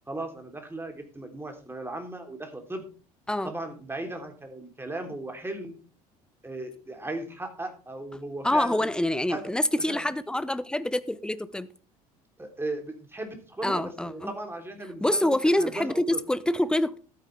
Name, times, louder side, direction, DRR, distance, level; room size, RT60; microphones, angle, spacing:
voice 1, 0.1-2.9 3.4-5.8 6.4-8.9 9.3-9.4 9.9-10.0 12.4-16.2, right 2 dB, 10° right, 3.3 m, -37 dB
voice 2, 8.4-11.7 13.6-14.3 15.0-17.0, left 1 dB, 5° left, 0.8 m, -26 dB
12.5 x 9.4 x 3.4 m
hypercardioid pair, 65°, 19 cm